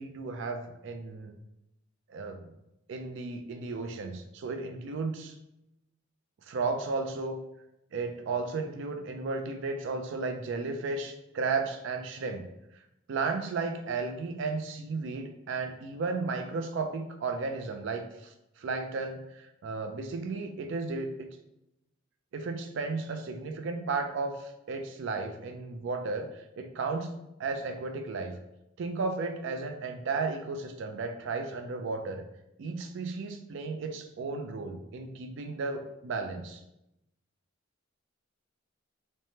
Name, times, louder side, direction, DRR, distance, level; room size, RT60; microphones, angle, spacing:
voice 1, 0.0-1.3 2.1-2.5 2.9-5.3 6.5-7.4 7.9-12.4 13.1-21.3 22.3-27.1 27.4-28.4 28.8-32.2 32.6-36.6, right 4 dB, 65° right, 6 dB, 0.4 m, -34 dB
3.2 x 2.1 x 2.7 m, 0.85 s
head